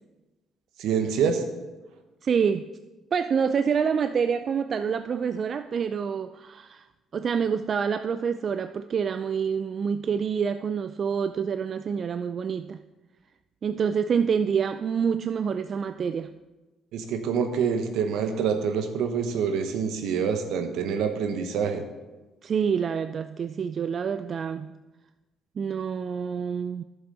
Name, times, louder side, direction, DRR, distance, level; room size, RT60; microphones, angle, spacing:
voice 1, 0.8-1.4 16.9-21.8, right 6 dB, 75° right, 7 dB, 1.1 m, -26 dB
voice 2, 2.2-2.7 3.1-6.8 7.1-12.8 13.6-16.4 22.4-24.7 25.6-26.8, right 6 dB, 50° right, 11 dB, 0.3 m, -27 dB
11.0 x 7.0 x 4.1 m, 1.2 s
supercardioid pair, 70°, 0 cm